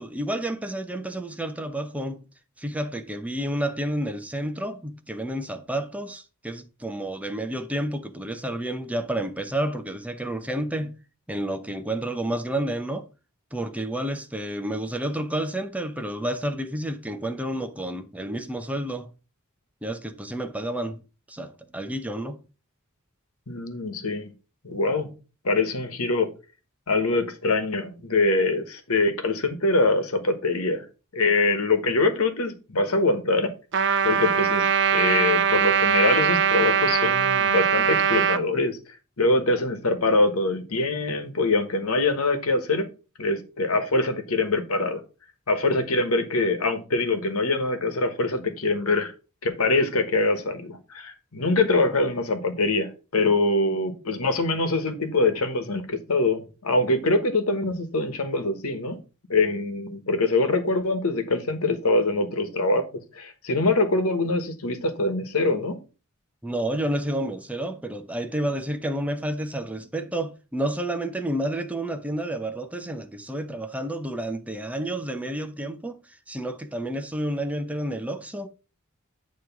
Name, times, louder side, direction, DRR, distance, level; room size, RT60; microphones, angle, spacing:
voice 1, 0.0-2.2 2.6-11.0 11.3-13.1 13.5-19.1 19.8-21.0 21.3-22.4 66.4-78.5, right 1 dB, 5° right, 0.7 m, -30 dB
voice 2, 23.5-24.3 24.6-25.1 25.4-26.3 26.9-30.8 31.1-33.5 34.0-38.8 39.2-42.9 43.2-45.0 45.5-49.1 49.4-59.0 59.3-62.8 63.1-65.8, left 2 dB, 85° left, 1.3 m, -24 dB
Trumpet, 33.7-38.4, right 7 dB, 55° right, 0.6 m, -21 dB
9.1 x 3.1 x 5.8 m
head